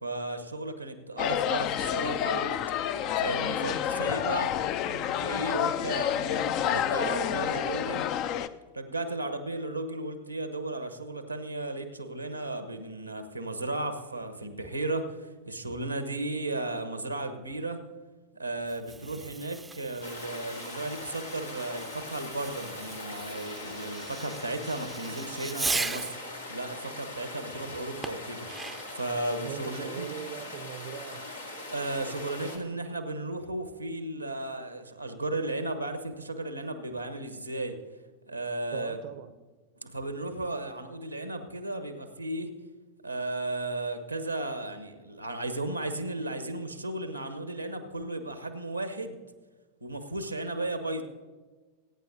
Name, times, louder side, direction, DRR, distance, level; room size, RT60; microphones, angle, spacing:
voice 1, 0.0-2.6 3.2-4.5 4.9-8.0 8.7-17.8 18.3-26.2 26.5-28.5 28.9-30.1 31.7-37.8 38.2-39.0 39.8-42.5 43.0-49.2 49.8-51.0, right 2 dB, 85° right, 8 dB, 1.1 m, -35 dB
sound 1, 1.2-8.5, left 10 dB, 40° left, 0.5 m, -29 dB
voice 2, 6.4-7.9 29.4-31.3 38.7-39.3, right 9 dB, 50° right, 10 dB, 0.7 m, -41 dB
Fireworks, 18.6-26.3 28.0-29.0, right 3 dB, 10° right, 0.6 m, -38 dB
sound 2, 20.0-32.6, left 2 dB, 80° left, 1.9 m, -41 dB
21.5 x 9.4 x 2.7 m, 1.3 s
figure-of-eight pair, 90°, 0 cm